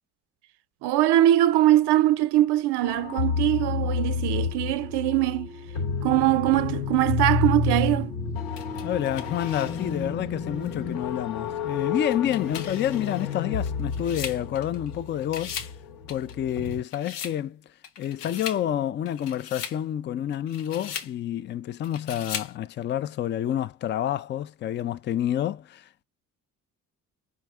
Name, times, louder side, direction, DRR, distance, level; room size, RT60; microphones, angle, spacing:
voice 1, 0.8-5.5 6.0-8.2, right 14 dB, 60° right, 0.6 m, -22 dB
sound 1, 2.8-16.8, left 5 dB, 75° left, 0.9 m, -30 dB
sound 2, 8.6-10.1 10.7-10.8 11.9-14.9 15.2-15.8 16.1-17.4 17.8-18.6 19.1-19.8 20.3-21.1 21.8-22.5, left 8 dB, 90° left, 0.6 m, -38 dB
voice 2, 8.8-15.5 16.1-26.0, left 11 dB, 25° left, 0.3 m, -29 dB
4.7 x 2.0 x 3.5 m
hypercardioid pair, 50°, 46 cm